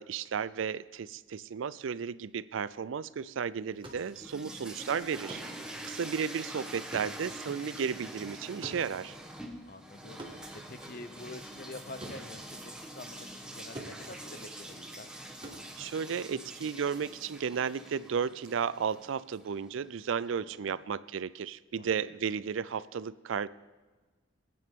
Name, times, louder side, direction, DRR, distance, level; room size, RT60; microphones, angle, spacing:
voice 1, 0.0-5.4 5.8-9.2 15.8-23.5, right 6 dB, 80° right, 18 dB, 0.4 m, -34 dB
sound 1, 3.6-13.5 13.7-16.7, right 1 dB, 25° right, 1.7 m, -49 dB
sound 2, 3.8-19.8, right 1 dB, 5° right, 1.2 m, -45 dB
voice 2, 5.8-6.1 9.7-10.2 10.5-15.1 20.3-20.9 21.8-21.9, left 2 dB, 45° left, 10 dB, 0.7 m, -47 dB
20.5 x 9.4 x 3.7 m, 1.3 s
head